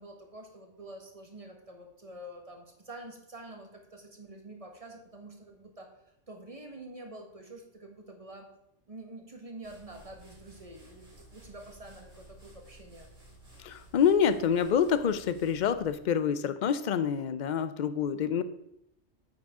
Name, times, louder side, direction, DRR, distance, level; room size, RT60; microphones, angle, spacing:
voice 1, 0.0-5.9 6.3-8.5 8.9-13.1, right 1 dB, 30° right, 2 dB, 1.6 m, -47 dB
sound 1, 9.6-16.1, right 1 dB, 90° right, 4.3 m, -55 dB
voice 2, 13.6-18.4, left 7 dB, 50° left, 13 dB, 0.6 m, -27 dB
9.6 x 8.1 x 3.7 m, 0.79 s
omnidirectional pair, 1.2 m